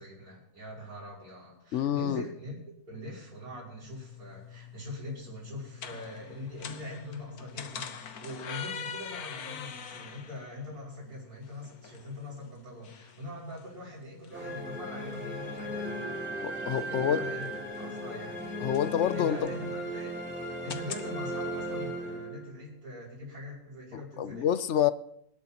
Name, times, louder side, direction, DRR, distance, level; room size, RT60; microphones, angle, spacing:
voice 1, 0.0-2.6 2.9-16.4 16.9-18.5 19.1-20.1 20.6-24.5, left 1 dB, 75° right, 6.1 m, -42 dB
voice 2, 1.7-2.2 16.4-17.2 18.6-19.4 24.2-24.9, left 10 dB, 60° left, 0.8 m, -27 dB
sound 1, 3.9-21.1, left 7 dB, 75° left, 1.5 m, -45 dB
sound 2, 14.3-22.7, equal, 5° right, 3.5 m, -36 dB
25.5 x 12.0 x 3.0 m
omnidirectional pair, 1.6 m